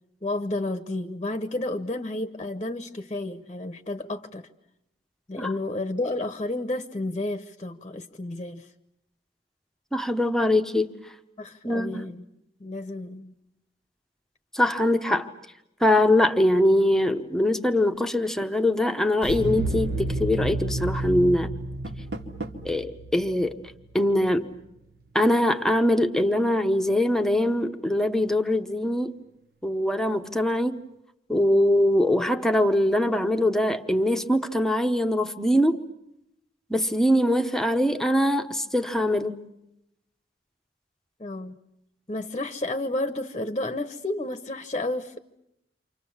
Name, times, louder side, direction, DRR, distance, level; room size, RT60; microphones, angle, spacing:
voice 1, 0.2-4.5 5.3-8.7 11.4-12.3 12.6-13.3 41.2-41.6 42.1-45.2, left 2 dB, 30° left, 0.9 m, -31 dB
voice 2, 9.9-10.9 11.6-12.0 14.5-15.3 15.8-21.5 22.6-23.6 23.9-24.5 25.1-29.2 29.6-30.8 31.3-35.8 36.7-39.4, left 1 dB, 5° left, 0.9 m, -22 dB
sound 1, 19.2-24.1, right 1 dB, 55° right, 1.1 m, -31 dB
Door, 21.6-22.8, right 1 dB, 80° right, 2.4 m, -38 dB
29.0 x 26.0 x 7.2 m
head